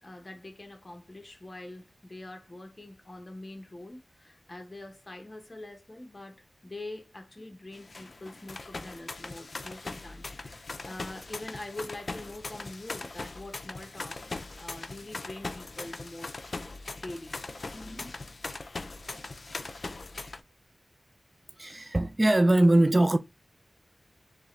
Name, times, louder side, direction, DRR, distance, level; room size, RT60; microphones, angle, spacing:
voice 1, 0.0-16.4 17.0-17.4 17.7-18.3, left 2 dB, 35° left, 1.0 m, -44 dB
sound 1, 7.7-20.4, left 3 dB, 55° left, 0.4 m, -40 dB
voice 2, 21.6-23.2, right 1 dB, 25° right, 0.3 m, -21 dB
3.6 x 3.2 x 3.1 m
wide cardioid pair, 90°, 0 cm